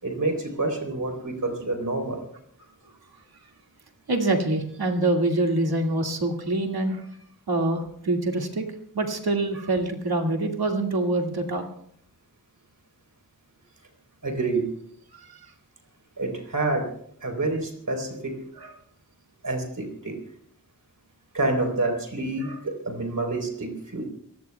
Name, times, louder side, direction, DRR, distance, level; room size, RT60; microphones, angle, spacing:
voice 1, 0.0-2.3 14.2-14.7 16.2-16.9 17.2-18.4 19.4-20.2 21.3-24.0, right 2 dB, 60° right, 3 dB, 4.0 m, -28 dB
voice 2, 4.1-7.0 7.5-8.6 8.9-11.6 15.1-15.2 18.6-18.7 22.4-22.6, right 2 dB, 85° right, 2 dB, 2.2 m, -25 dB
27.0 x 19.0 x 2.3 m, 0.67 s
wide cardioid pair, 70°, 36 cm